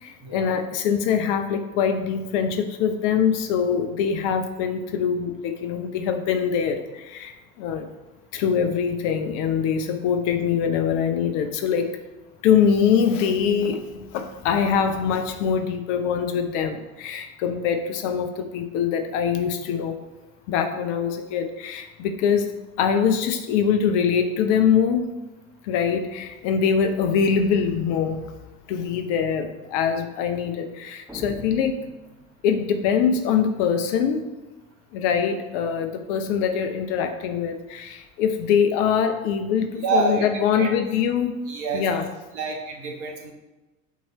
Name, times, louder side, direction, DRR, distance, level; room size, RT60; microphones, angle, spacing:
voice 1, 0.0-7.9 8.3-12.0 12.4-20.0 20.5-22.5 22.8-25.1 25.6-28.3 28.7-31.8 32.4-34.2 34.9-41.5 41.7-42.1, left 7 dB, 45° left, 6 dB, 0.6 m, -23 dB
sound 1, 31.1-32.7, equal, 5° right, 1.3 m, -42 dB
voice 2, 39.8-40.3 40.6-40.7 41.5-42.0 42.3-43.3, right 4 dB, 45° right, 2 dB, 1.3 m, -27 dB
8.1 x 3.1 x 4.1 m, 1.1 s
figure-of-eight pair, 70°, 43 cm